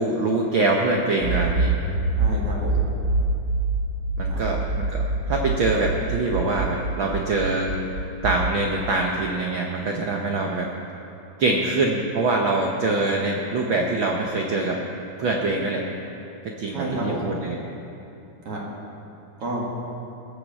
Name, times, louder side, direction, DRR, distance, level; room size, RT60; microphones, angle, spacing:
voice 1, 0.0-1.7 4.2-7.7 8.2-10.7 11.4-14.8 15.2-15.8 16.4-17.6, right 2 dB, 75° right, 0 dB, 1.1 m, -24 dB
Accelerating revving vroom, 1.2-8.5, right 3 dB, 35° right, 4.2 m, -25 dB
voice 2, 2.2-2.9 4.3-4.4 16.7-17.3 18.5-18.6 19.4-19.6, right 2 dB, 55° right, -3 dB, 2.7 m, -30 dB
18.5 x 6.6 x 7.4 m, 2.9 s
omnidirectional pair, 3.4 m